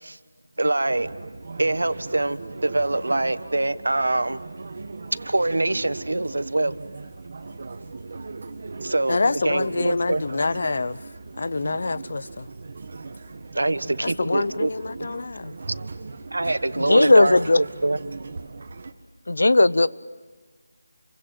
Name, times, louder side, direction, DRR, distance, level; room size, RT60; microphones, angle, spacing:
voice 1, 0.6-1.1 1.6-4.4 5.2-6.8 8.8-10.2 13.5-14.7 15.0-15.1 16.3-18.0, right 2 dB, 85° right, 1.4 m, -24 dB
sound 1, 0.9-18.9, right 3 dB, 40° right, 1.8 m, -38 dB
voice 2, 9.1-11.0 11.4-12.5 14.0-15.6, left 3 dB, 45° left, 0.7 m, -26 dB
voice 3, 16.8-17.6 19.3-19.9, left 2 dB, 75° left, 0.9 m, -16 dB
30.0 x 24.5 x 7.8 m
figure-of-eight pair, 175°, 0 cm